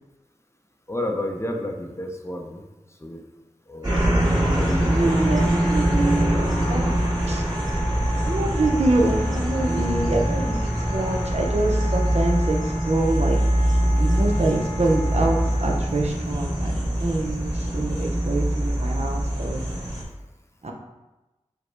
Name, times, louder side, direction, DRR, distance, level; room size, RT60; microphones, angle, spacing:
voice 1, 0.9-2.6 3.0-3.2 3.7-4.1 4.5-6.0 10.0-10.2, left 1 dB, 25° left, 2 dB, 0.6 m, -32 dB
sound 1, 3.8-20.0, right 1 dB, 35° right, 1.5 m, -23 dB
voice 2, 4.2-6.9 7.3-7.4 8.3-12.6 12.9-13.4 14.0-19.6 20.6-20.7, right 2 dB, 65° right, 1 dB, 0.7 m, -25 dB
Wind instrument woodwind instrument, 5.0-15.8, left 1 dB, 70° left, 0.9 m, -37 dB
5.0 x 2.2 x 4.5 m, 1.0 s
wide cardioid pair, 45°, 12 cm